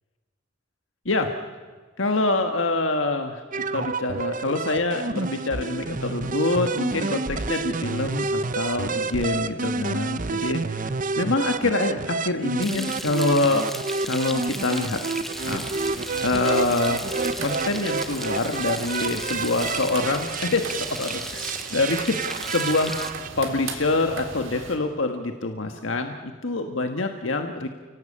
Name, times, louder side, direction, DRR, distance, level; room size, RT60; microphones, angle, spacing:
voice 1, 2.0-3.4 3.7-13.7 14.0-15.0 15.4-15.7 16.2-17.1 17.4-22.9 23.4-27.7, left 2 dB, 80° left, 5 dB, 1.6 m, -25 dB
sound 1, 3.5-23.3, right 4 dB, 45° right, 0.8 m, -29 dB
Frying (food), 12.6-23.1, equal, ahead, 1.2 m, -36 dB
sound 2, 15.3-24.8, right 4 dB, 90° right, 3.5 m, -40 dB
29.5 x 18.0 x 8.7 m, 1.5 s
head